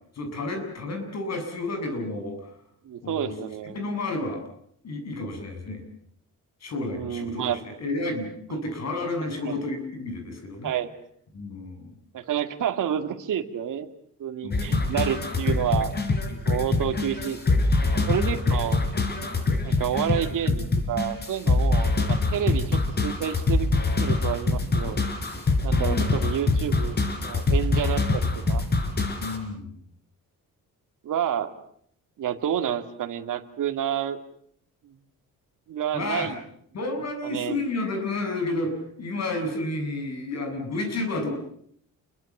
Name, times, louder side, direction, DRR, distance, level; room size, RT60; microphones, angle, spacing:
voice 1, 0.1-2.5 3.0-3.3 3.6-4.4 4.8-5.8 6.6-10.7 11.3-12.0 14.4-15.0 16.7-17.0 18.0-18.2 25.8-26.1 29.2-29.8 35.9-36.3 36.7-41.3, left 2 dB, 50° left, 5 dB, 7.7 m, -31 dB
voice 2, 2.8-3.8 6.9-7.6 8.5-8.6 9.5-9.7 10.6-10.9 12.1-13.9 14.2-15.9 16.5-17.8 18.1-18.8 19.6-23.7 24.0-25.0 25.6-27.0 27.2-28.6 31.0-31.5 32.2-34.2 34.8-34.9 35.7-36.4 37.2-37.6, right 9 dB, 65° right, 7 dB, 2.4 m, -29 dB
sound 1, 14.5-29.4, left 3 dB, 30° left, 4.4 m, -24 dB
29.0 x 23.0 x 7.4 m, 0.66 s
cardioid pair, 165°, 34 cm